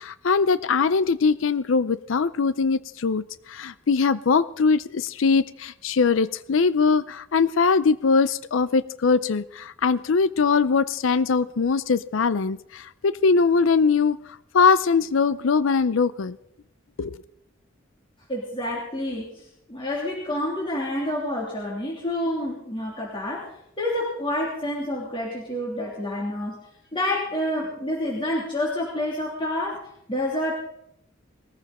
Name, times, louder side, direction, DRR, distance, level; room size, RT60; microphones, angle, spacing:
voice 1, 0.0-14.2 14.5-16.4 17.0-17.2, left 5 dB, 75° left, 16 dB, 0.5 m, -21 dB
voice 2, 18.3-23.5 23.8-26.6 26.9-29.8 30.1-30.6, left 1 dB, 25° left, -3 dB, 3.2 m, -28 dB
20.0 x 14.5 x 4.3 m, 0.74 s
head